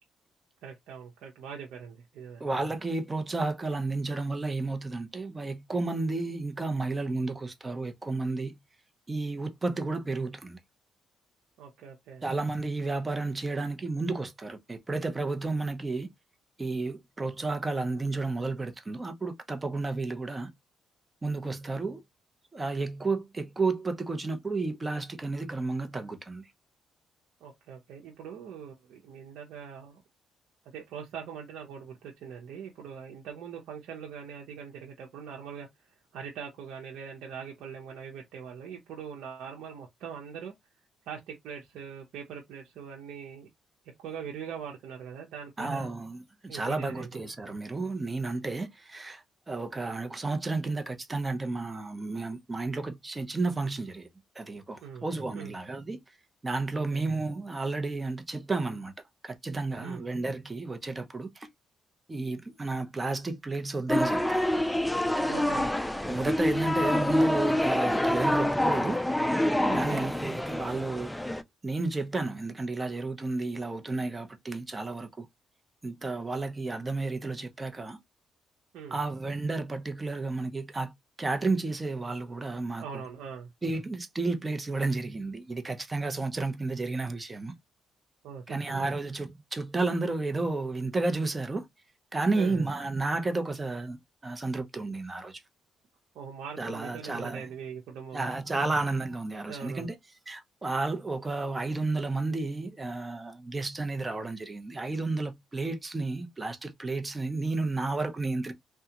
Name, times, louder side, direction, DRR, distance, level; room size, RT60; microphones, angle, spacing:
voice 1, 0.6-2.4 11.6-12.2 27.4-30.0 30.7-35.7 36.1-40.5 41.1-43.5 44.0-45.9 46.5-47.1 54.8-55.0 55.3-55.5 56.7-57.0 59.8-60.0 65.3-65.7 69.7-70.1 78.7-79.0 82.8-83.5 88.2-88.9 92.3-92.7 96.1-98.3 99.5-99.9, right 7 dB, 85° right, 0.7 m, -42 dB
voice 2, 2.4-8.6 9.1-10.6 12.2-16.1 16.6-20.5 21.2-22.0 22.5-26.5 45.6-54.1 54.3-56.0 56.4-58.9 59.2-61.5 62.1-64.5 66.0-69.0 69.7-71.2 71.6-75.3 75.8-78.0 78.9-80.9 81.2-83.0 83.6-87.5 88.5-91.7 92.1-94.0 94.2-95.4 96.6-97.5 98.1-99.9 100.3-108.5, right 3 dB, 25° right, 0.8 m, -32 dB
sound 1, 63.9-71.4, left 1 dB, 5° left, 0.4 m, -26 dB
3.5 x 2.3 x 2.9 m
cardioid pair, 90°, 0 cm